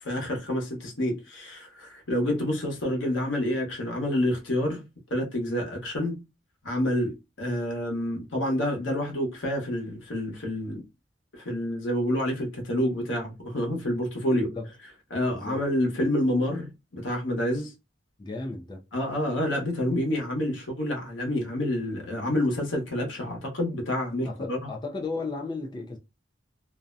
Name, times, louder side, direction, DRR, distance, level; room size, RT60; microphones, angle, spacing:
voice 1, 0.0-4.8 5.1-6.2 6.6-10.8 11.3-14.5 15.1-17.7 18.9-24.7, left 1 dB, 85° left, 1.0 m, -28 dB
voice 2, 14.4-14.7 15.3-15.6 18.2-18.8 24.2-26.0, left 3 dB, 25° left, 0.4 m, -35 dB
2.6 x 2.1 x 2.4 m
head